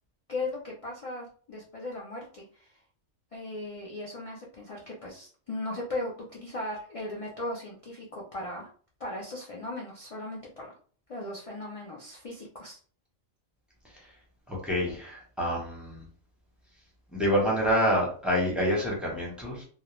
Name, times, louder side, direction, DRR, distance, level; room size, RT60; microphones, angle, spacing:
voice 1, 0.3-2.8 3.3-8.7 9.0-10.7 11.1-12.8, left 2 dB, 55° left, -3 dB, 0.3 m, -37 dB
voice 2, 14.5-16.0 17.1-19.6, equal, ahead, -4 dB, 0.6 m, -27 dB
2.3 x 2.0 x 3.0 m, 0.43 s
omnidirectional pair, 1.3 m